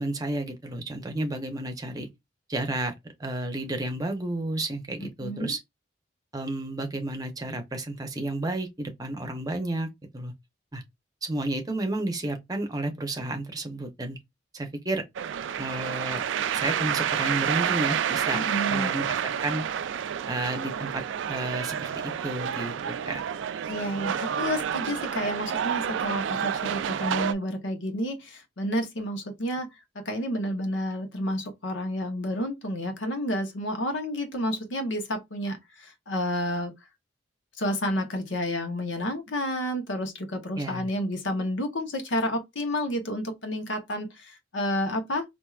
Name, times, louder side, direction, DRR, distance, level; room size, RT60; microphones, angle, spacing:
voice 1, 0.0-2.1 2.5-2.9 3.2-5.6 6.3-10.3 10.7-10.8 11.2-14.2 14.5-15.0 15.6-16.2 16.5-18.4 18.7-19.6 20.2-21.0 21.3-23.2 40.6-40.9, right 2 dB, 20° right, 0.7 m, -31 dB
voice 2, 5.0-5.5 18.3-18.9 23.7-29.7 29.9-36.7 37.6-45.2, equal, 90° left, 0.9 m, -30 dB
sound 1, 15.1-27.3, right 8 dB, 80° right, 0.3 m, -29 dB
4.5 x 2.6 x 2.4 m
head